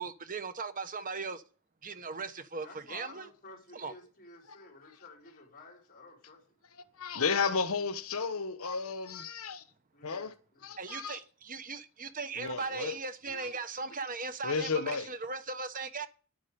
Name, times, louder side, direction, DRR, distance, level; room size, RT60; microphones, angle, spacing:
voice 1, 0.0-1.4 1.8-3.3 3.7-3.9 10.8-16.1, right 4 dB, 40° right, 1.1 m, -38 dB
voice 2, 2.6-6.6 9.9-10.6, left 3 dB, 40° left, 4.9 m, -53 dB
voice 3, 7.0-9.6 10.0-10.3 10.6-11.2 12.4-12.9 13.3-13.5 14.4-15.1, left 5 dB, 70° left, 1.1 m, -33 dB
11.0 x 9.3 x 5.2 m
head